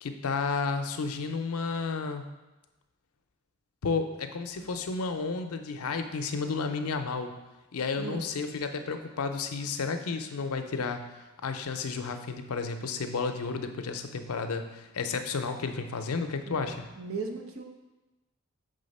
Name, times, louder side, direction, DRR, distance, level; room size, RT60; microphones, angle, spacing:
voice 1, 0.0-2.2 3.8-7.4 7.7-16.9, left 4 dB, 85° left, 7 dB, 0.5 m, -32 dB
voice 2, 8.0-8.3 16.5-17.6, right 4 dB, 70° right, 3 dB, 0.8 m, -38 dB
5.6 x 3.7 x 5.3 m, 1.1 s
head